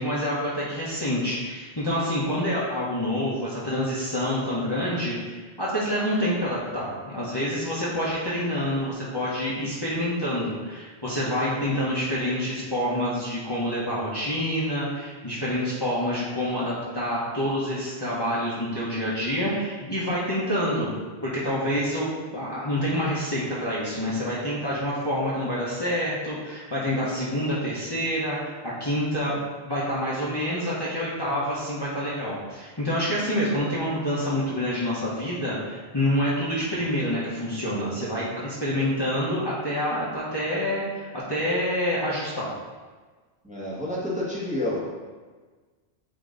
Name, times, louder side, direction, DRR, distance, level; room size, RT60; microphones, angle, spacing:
voice 1, 0.0-20.9 21.2-22.1 22.3-42.5, equal, 25° left, -8 dB, 1.1 m, -27 dB
voice 2, 43.4-44.9, left 1 dB, 5° right, -8 dB, 1.5 m, -29 dB
8.6 x 3.0 x 3.9 m, 1.4 s
omnidirectional pair, 1.1 m